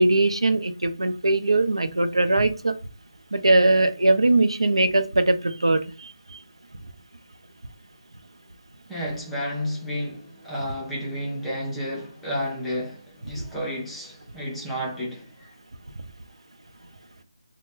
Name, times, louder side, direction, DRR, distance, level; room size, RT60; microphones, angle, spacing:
voice 1, 0.0-2.8 3.3-6.1, right 2 dB, 85° right, 0.5 m, -20 dB
voice 2, 8.9-15.5, equal, ahead, 0.6 m, -31 dB
2.5 x 2.2 x 3.6 m
figure-of-eight pair, 160°, 3 cm